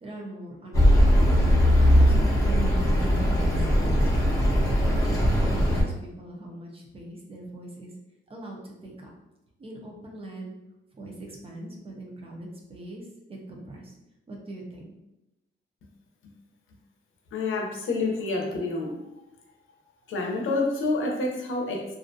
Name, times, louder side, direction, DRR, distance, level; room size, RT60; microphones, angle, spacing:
voice 1, 0.0-1.2 1.7-2.7 3.0-4.4 4.9-7.9 8.3-9.1 9.6-10.6 11.0-13.0 13.3-13.9 14.3-14.9, right 1 dB, 30° right, 0 dB, 0.5 m, -42 dB
Accelerating revving vroom, 0.7-5.8, equal, 15° left, 0.6 m, -20 dB
voice 2, 17.3-18.9 20.1-21.8, left 3 dB, 80° left, 1 dB, 0.6 m, -28 dB
2.4 x 2.2 x 2.6 m, 0.92 s
wide cardioid pair, 150°, 20 cm